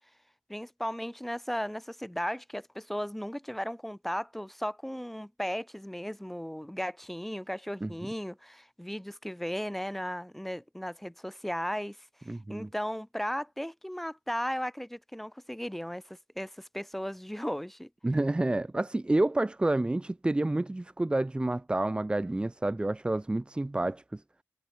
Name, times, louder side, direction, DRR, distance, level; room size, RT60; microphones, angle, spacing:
voice 1, 0.5-12.0 12.3-17.9, equal, 5° left, 3.2 m, -36 dB
voice 2, 12.3-12.7 18.0-24.2, right 2 dB, 15° right, 2.1 m, -29 dB
wide cardioid pair, 110°, 6 cm